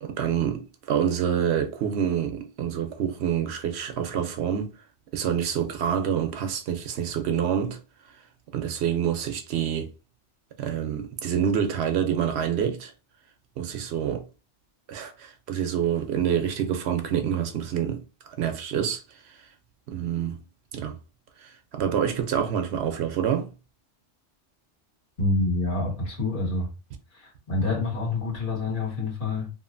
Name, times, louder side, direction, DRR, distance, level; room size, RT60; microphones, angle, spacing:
voice 1, 0.0-4.7 5.1-7.8 8.5-9.9 10.6-12.9 13.6-14.3 14.9-19.0 19.9-20.4 20.7-21.0 21.4-23.5, right 8 dB, 70° right, 0.8 m, -27 dB
voice 2, 25.2-26.7 27.1-29.5, left 2 dB, 50° left, 1.5 m, -27 dB
2.8 x 2.5 x 2.5 m
omnidirectional pair, 1.2 m